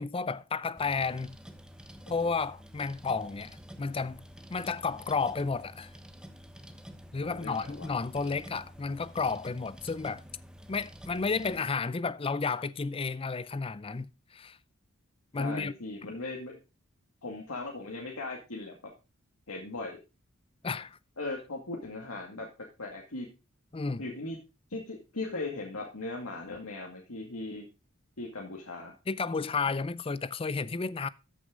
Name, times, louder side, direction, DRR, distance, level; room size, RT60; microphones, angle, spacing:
voice 1, 0.0-1.4 2.1-4.2 4.5-5.9 7.1-10.2 10.7-14.6 15.3-15.7 20.6-21.0 23.7-24.0 29.1-31.1, left 4 dB, 25° left, 0.5 m, -32 dB
sound 1, 0.8-11.6, equal, 5° right, 1.0 m, -49 dB
voice 2, 7.2-7.9 15.3-16.6 17.2-18.8 19.5-20.0 21.2-22.5 22.8-23.3 24.0-24.4 24.7-27.7 28.2-28.9, left 2 dB, 85° left, 2.1 m, -38 dB
13.5 x 6.5 x 3.8 m
head